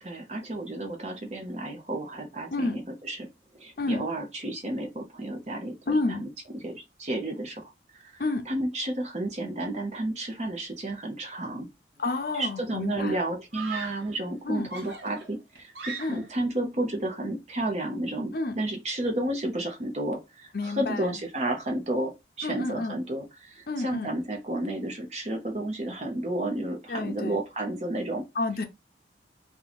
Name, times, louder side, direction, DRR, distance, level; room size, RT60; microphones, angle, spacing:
voice 1, 0.0-3.3 3.5-6.3 6.5-11.7 12.3-22.1 22.4-28.2, right 1 dB, 40° right, 0.7 m, -32 dB
voice 2, 5.9-6.2 8.2-8.5 12.0-13.2 14.4-14.7 16.0-16.2 18.3-18.6 20.5-21.1 22.4-22.9 23.7-24.1 26.9-27.4 28.4-28.6, left 2 dB, 55° left, 0.6 m, -29 dB
Screaming, 12.0-12.4 13.5-14.2 14.7-16.4, right 5 dB, 80° right, 0.9 m, -40 dB
3.0 x 2.3 x 4.0 m
head